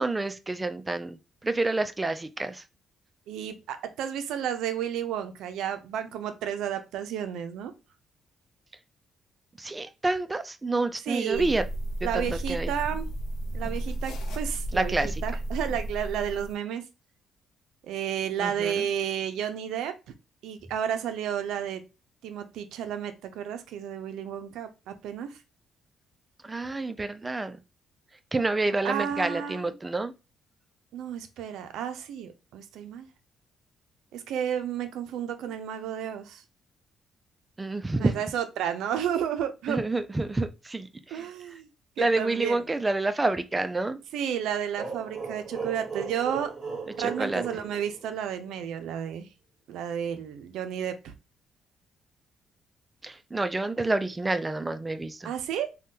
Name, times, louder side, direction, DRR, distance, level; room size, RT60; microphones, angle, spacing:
voice 1, 0.0-2.6 9.6-11.6 12.1-12.7 14.7-15.1 18.4-18.9 26.4-27.6 28.3-30.1 37.6-38.2 39.7-41.5 42.0-44.0 47.0-47.4 53.0-55.3, right 2 dB, 20° right, 0.3 m, -28 dB
voice 2, 3.3-7.7 11.1-11.5 12.0-13.0 13.5-15.0 15.2-16.9 17.8-19.9 20.4-21.8 22.2-25.4 28.8-29.7 30.9-33.1 34.1-36.4 38.0-39.8 41.1-41.7 42.0-42.6 44.1-46.5 47.0-49.3 49.7-51.1 55.2-55.7, right 9 dB, 85° right, 0.4 m, -32 dB
sound 1, 11.3-16.5, right 1 dB, 85° left, 0.6 m, -33 dB
sound 2, 44.8-48.5, right 4 dB, 40° right, 1.0 m, -37 dB
3.4 x 2.2 x 2.7 m
cardioid pair, 90°, 0 cm